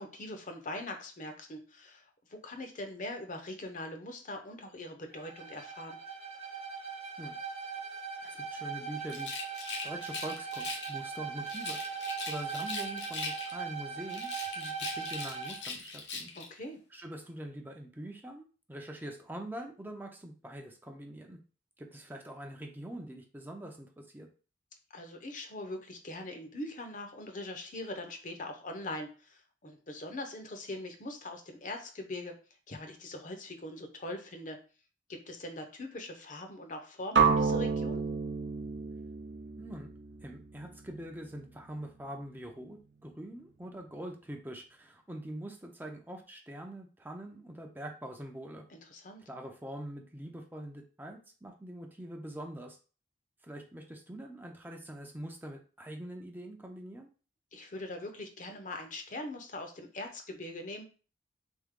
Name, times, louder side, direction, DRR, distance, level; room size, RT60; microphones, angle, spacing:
voice 1, 0.0-2.0 2.3-6.0 16.3-16.8 24.9-32.3 32.7-34.6 35.1-38.0 48.7-49.2 57.5-60.9, left 1 dB, 45° left, 5 dB, 0.8 m, -42 dB
Bowed string instrument, 5.1-15.6, right 6 dB, 35° right, 0.9 m, -40 dB
voice 2, 8.2-9.3 9.8-16.3 16.9-21.4 21.8-24.3 39.6-39.9 40.2-48.6 49.2-52.8 53.4-57.1, right 1 dB, 10° right, 2 dB, 0.5 m, -44 dB
Rattle, 9.1-11.0 11.4-13.7 14.1-16.5, left 4 dB, 80° left, 0.9 m, -41 dB
sound 1, 37.2-41.1, right 5 dB, 75° right, 0.7 m, -30 dB
3.6 x 3.6 x 3.6 m, 0.36 s
head